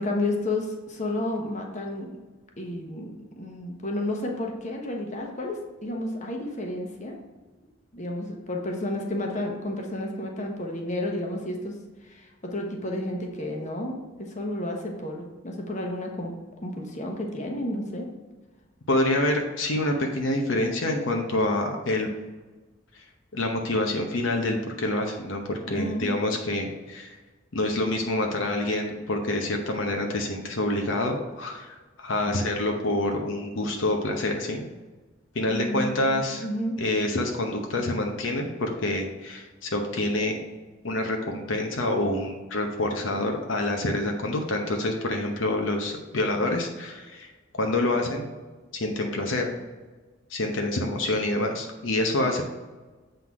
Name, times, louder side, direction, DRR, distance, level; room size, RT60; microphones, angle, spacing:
voice 1, 0.0-2.1 2.6-7.2 7.9-11.8 12.0-16.3 16.6-18.1 25.7-26.2 35.4-36.8, left 1 dB, 35° left, 1 dB, 1.1 m, -31 dB
voice 2, 18.9-22.1 23.3-27.1 27.5-34.6 35.3-36.4 36.8-40.4 40.8-47.3 47.5-48.3 48.7-49.5 50.3-52.4, left 1 dB, 75° left, 2 dB, 0.8 m, -27 dB
7.7 x 3.9 x 4.7 m, 1.3 s
head